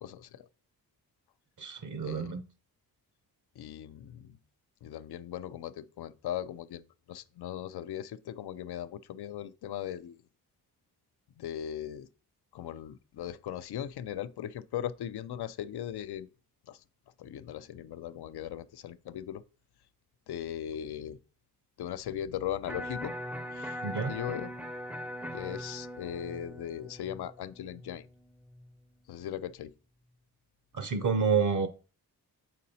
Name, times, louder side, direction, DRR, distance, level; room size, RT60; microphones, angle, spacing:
voice 1, 0.0-0.5 2.0-2.4 3.6-4.4 4.8-10.2 11.4-12.1 12.5-16.3 16.7-16.8 17.2-19.4 20.3-21.2 21.8-23.1 23.5-23.8 24.1-24.5 25.3-28.1 29.1-29.7, left 10 dB, 80° left, 0.5 m, -38 dB
voice 2, 1.6-2.4 23.8-24.1 30.7-31.7, right 6 dB, 50° right, 0.6 m, -28 dB
Electric guitar, 22.7-28.7, equal, 5° right, 0.4 m, -41 dB
7.4 x 5.2 x 2.8 m
wide cardioid pair, 115°, 38 cm